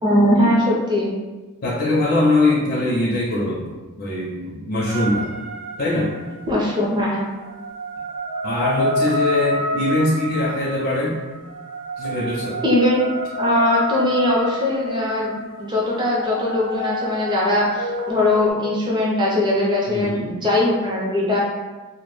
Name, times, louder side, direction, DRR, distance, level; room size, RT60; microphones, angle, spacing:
voice 1, 0.0-1.1 6.5-7.2 12.3-12.4 12.6-13.1 13.4-15.3 15.6-21.4, left 1 dB, 20° right, -4 dB, 0.5 m, -20 dB
voice 2, 1.6-3.7 4.0-5.3 5.8-6.1 8.4-11.2 12.0-12.6 19.9-20.3, left 2 dB, 45° left, -5 dB, 0.4 m, -22 dB
sound 1, 4.9-6.5 7.4-18.5, equal, 85° right, 0.6 m, -28 dB
2.1 x 2.0 x 3.0 m, 1.2 s
head